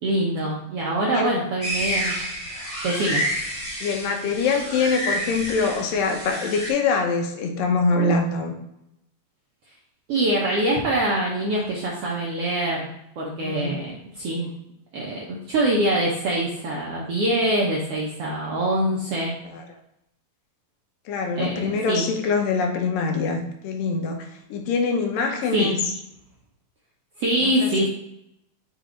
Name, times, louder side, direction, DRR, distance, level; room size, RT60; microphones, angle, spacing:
voice 1, 0.0-2.2 2.8-3.2 10.1-12.9 13.2-14.5 14.9-19.3 21.4-22.1 25.5-25.7 27.2-27.9, right 1 dB, 75° right, -4 dB, 1.4 m, -24 dB
sound 1, 1.6-6.7, equal, 30° left, 1.5 m, -29 dB
voice 2, 3.8-8.5 13.4-13.8 19.5-19.7 21.1-25.9 27.4-27.9, left 4 dB, 85° left, 4 dB, 2.5 m, -24 dB
6.8 x 4.0 x 3.8 m, 0.82 s
omnidirectional pair, 3.9 m